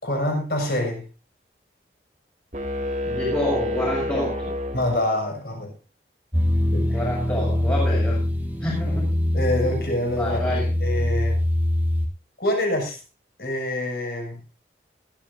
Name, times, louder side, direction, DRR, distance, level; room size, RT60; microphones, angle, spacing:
voice 1, 0.0-1.1 4.7-5.7 6.7-7.0 9.3-10.4 10.8-11.4 12.4-13.0 13.4-14.4, left 1 dB, 60° left, 2 dB, 6.5 m, -26 dB
sound 1, 2.5-5.5, left 1 dB, 45° right, 3.1 m, -29 dB
voice 2, 3.0-4.5 6.9-8.2 8.6-9.1 10.2-10.7, left 1 dB, 15° left, -5 dB, 7.0 m, -27 dB
sound 2, 6.3-12.1, left 1 dB, 10° right, 2.3 m, -23 dB
21.0 x 13.5 x 2.7 m, 0.29 s
head